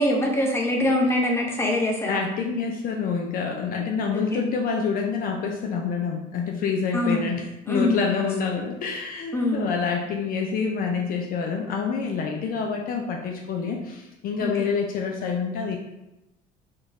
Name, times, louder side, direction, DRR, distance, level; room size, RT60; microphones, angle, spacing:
voice 1, 0.0-2.2 4.1-4.4 6.9-7.4 7.7-8.3 9.3-9.8 14.4-14.5, left 1 dB, 15° left, 0 dB, 0.9 m, -24 dB
voice 2, 2.1-15.8, left 5 dB, 55° left, 1 dB, 0.5 m, -27 dB
3.7 x 2.4 x 4.0 m, 0.93 s
cardioid pair, 100°, 18 cm